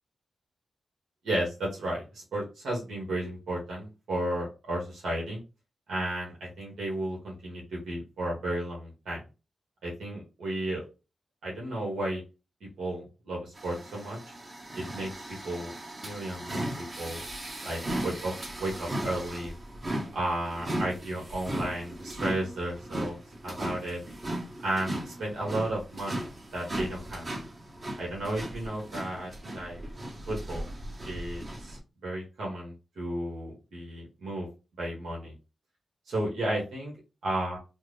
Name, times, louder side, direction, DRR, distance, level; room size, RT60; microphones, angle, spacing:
voice 1, 1.2-5.4 5.9-9.2 9.8-10.8 11.4-12.2 12.8-14.2 14.7-15.1 15.4-15.7 16.0-16.4 16.8-17.2 17.6-18.3 18.6-19.5 20.1-23.2 23.4-24.0 24.6-27.2 28.0-29.8 30.3-30.7 31.0-31.8 32.0-34.5 34.8-35.3 36.1-36.9 37.2-37.6, right 1 dB, 80° right, -3 dB, 1.3 m, -33 dB
sound 1, 13.6-31.8, right 1 dB, 45° right, 1.1 m, -37 dB
3.5 x 2.1 x 3.2 m, 0.29 s
cardioid pair, 50°, 0 cm